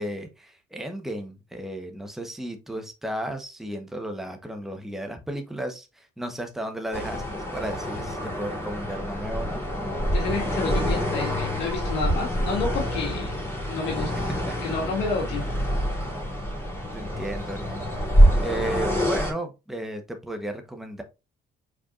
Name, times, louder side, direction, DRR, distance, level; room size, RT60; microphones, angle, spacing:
voice 1, 0.0-9.6 14.5-14.6 16.9-17.9 18.4-21.0, right 1 dB, ahead, 5 dB, 1.0 m, -34 dB
sound 1, 6.9-19.3, equal, 15° left, 3.0 m, -26 dB
voice 2, 10.1-13.4 13.7-15.6, left 4 dB, 90° left, -1 dB, 1.7 m, -30 dB
4.8 x 4.5 x 2.4 m, 0.26 s
cardioid pair, 110°, 17 cm